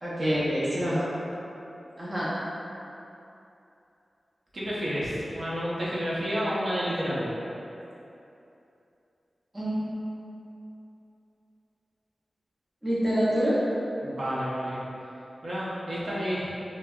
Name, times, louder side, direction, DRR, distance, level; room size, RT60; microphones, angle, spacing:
voice 1, 0.0-1.1 2.0-2.3 9.5-10.0 12.8-13.5, equal, 20° right, -10 dB, 0.6 m, -26 dB
voice 2, 4.5-7.3 14.0-14.8 15.4-16.5, equal, 50° right, -9 dB, 0.8 m, -30 dB
3.3 x 2.0 x 3.6 m, 2.8 s
wide cardioid pair, 110°, 0 cm